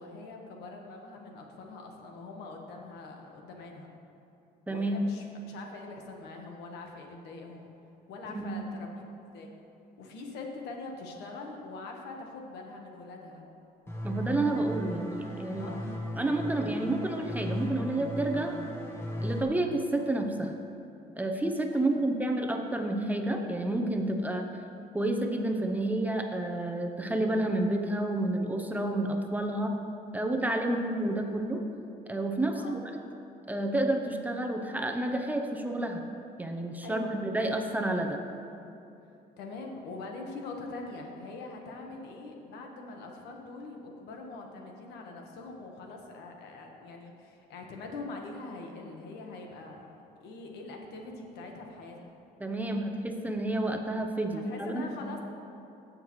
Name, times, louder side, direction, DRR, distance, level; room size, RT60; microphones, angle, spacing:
voice 1, 0.0-3.9 4.7-7.7 8.1-9.0 9.3-9.5 10.0-13.4 15.6-15.9 21.7-22.0 32.5-32.8 36.8-37.1 39.4-49.9 50.2-52.1 54.3-55.2, left 3 dB, 80° left, 2 dB, 1.3 m, -43 dB
voice 2, 4.7-5.0 8.3-8.6 14.0-15.7 16.2-18.5 19.2-20.5 21.2-24.4 24.9-29.8 30.1-31.6 32.1-32.8 33.5-36.0 36.4-38.2 52.4-55.1, right 1 dB, 10° right, 3 dB, 0.7 m, -30 dB
sound 1, 13.9-19.4, equal, 15° left, 1.4 m, -36 dB
16.0 x 6.6 x 3.2 m, 2.7 s
cardioid pair, 110°, 17 cm